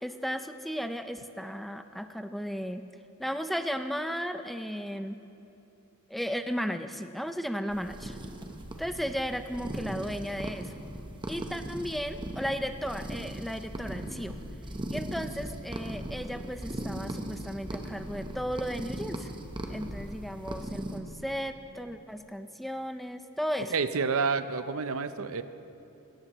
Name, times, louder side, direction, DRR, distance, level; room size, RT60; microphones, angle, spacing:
voice 1, 0.0-2.9 3.2-5.2 6.1-8.2 8.8-10.7 11.3-14.4 14.9-19.3 19.7-23.7, equal, ahead, 8 dB, 0.4 m, -35 dB
sound 1, 7.7-21.0, right 1 dB, 20° right, 0.9 m, -38 dB
voice 2, 23.7-25.4, right 5 dB, 70° right, 12 dB, 0.6 m, -29 dB
18.5 x 17.5 x 3.0 m, 2.8 s
head